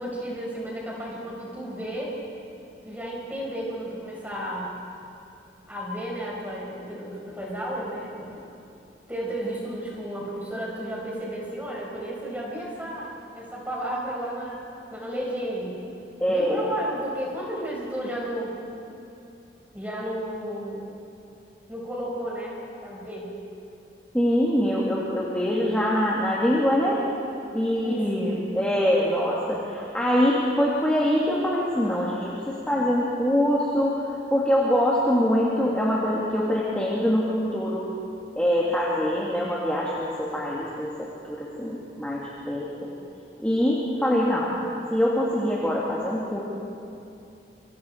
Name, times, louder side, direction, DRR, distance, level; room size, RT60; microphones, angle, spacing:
voice 1, 0.0-2.1 2.8-4.7 5.7-8.4 9.1-14.6 14.9-15.8 16.3-18.5 19.7-20.9 21.7-22.5 22.8-23.3 27.7-28.3, right 1 dB, 10° right, -4 dB, 5.4 m, -33 dB
voice 2, 16.2-16.7 24.1-27.0 27.5-37.8 38.4-42.9 43.4-44.5 44.9-46.5, equal, 5° left, -6 dB, 2.2 m, -24 dB
27.0 x 25.0 x 4.5 m, 2.8 s
head